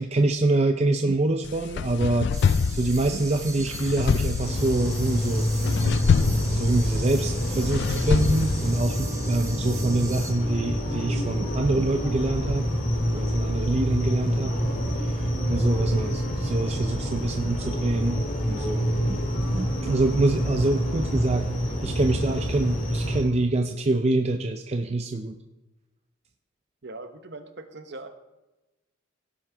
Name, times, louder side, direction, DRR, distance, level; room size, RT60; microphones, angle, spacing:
voice 1, 0.0-2.3 2.7-5.5 6.5-12.7 13.1-14.6 14.9-18.2 18.5-19.2 19.5-21.5 21.8-25.4, right 2 dB, 30° right, 6 dB, 0.5 m, -25 dB
sound 1, 1.4-8.8, left 5 dB, 55° left, 0.3 m, -26 dB
sound 2, 2.3-10.3, right 4 dB, 15° right, 1.0 m, -40 dB
sound 3, 4.4-23.2, equal, 40° left, 2.2 m, -27 dB
voice 2, 26.8-28.1, right 2 dB, 55° right, 8 dB, 1.0 m, -40 dB
16.5 x 6.3 x 4.8 m, 1.1 s
head